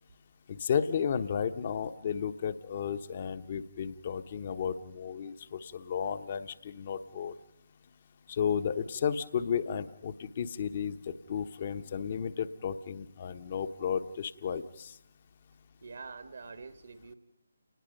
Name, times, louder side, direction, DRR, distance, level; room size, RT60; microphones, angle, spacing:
voice 1, 0.5-7.3 8.3-15.0, left 7 dB, 35° left, 11 dB, 1.0 m, -33 dB
voice 2, 15.8-17.1, right 4 dB, 60° right, 10 dB, 1.6 m, -45 dB
30.0 x 20.0 x 5.4 m, 0.83 s
figure-of-eight pair, 150°, 0 cm